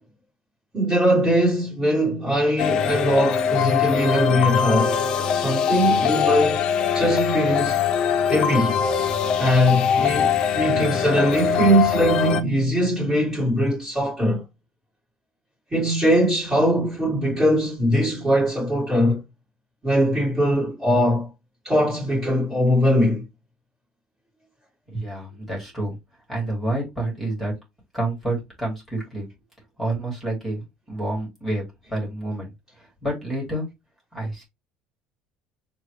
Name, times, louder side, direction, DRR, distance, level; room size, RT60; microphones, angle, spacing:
voice 1, 0.7-5.0 5.3-6.7 6.9-7.8 8.3-8.8 9.4-14.4 15.7-19.2 19.8-21.3 21.6-23.2, equal, 15° right, 2.1 m, -21 dB
sound 1, 2.6-12.4, left 7 dB, 35° left, 0.5 m, -22 dB
voice 2, 24.9-26.0 26.3-27.5 27.9-29.3 29.8-31.6 31.9-32.5 32.8-33.7 34.1-34.4, right 1 dB, 5° left, 2.0 m, -28 dB
6.6 x 2.3 x 3.2 m
cardioid pair, 175°, 2 cm